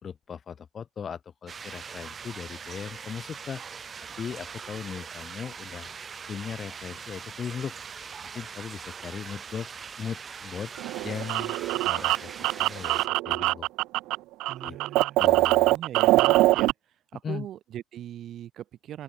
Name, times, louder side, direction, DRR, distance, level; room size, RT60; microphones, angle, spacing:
voice 1, 0.0-3.6 4.2-5.9 6.3-7.7 8.3-9.7 10.0-10.7 11.0-11.6 11.8-13.7 14.6-14.8 15.2-15.8 17.2-17.5, left 7 dB, 40° left, 5.0 m, -38 dB
sound 1, 1.5-13.1, right 6 dB, 35° right, 2.4 m, -41 dB
sound 2, 10.8-14.2 14.4-16.7, right 18 dB, 80° right, 0.5 m, -23 dB
voice 2, 14.5-15.2 15.7-16.7 17.1-19.0, right 11 dB, 60° right, 7.6 m, -40 dB
open air
cardioid pair, 95°, 0 cm